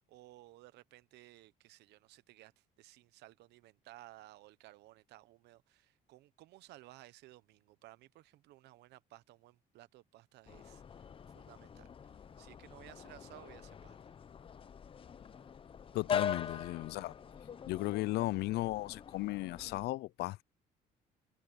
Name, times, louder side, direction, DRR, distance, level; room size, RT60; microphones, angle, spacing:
voice 1, 0.0-11.1 11.3-11.9 12.4-14.1 16.5-16.7, right 17 dB, 80° right, 1.0 m, -57 dB
sound 1, 10.5-19.9, left 7 dB, 30° left, 0.7 m, -43 dB
voice 2, 15.9-17.1 17.7-20.4, left 18 dB, 75° left, 0.5 m, -35 dB
cardioid pair, 110°, 17 cm